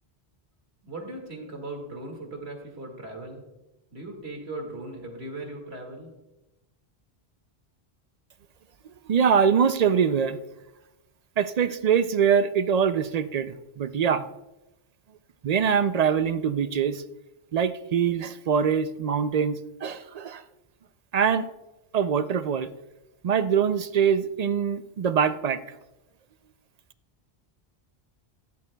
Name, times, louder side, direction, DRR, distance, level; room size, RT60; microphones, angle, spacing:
voice 1, 0.8-3.4 3.9-6.1, right 2 dB, 80° right, 2 dB, 2.3 m, -38 dB
voice 2, 9.1-10.4 11.4-14.3 15.4-17.0 17.5-20.4 21.1-21.5 21.9-22.7 23.2-25.6, right 7 dB, 55° right, 12 dB, 0.4 m, -23 dB
14.0 x 12.0 x 2.2 m, 0.99 s
omnidirectional pair, 1.1 m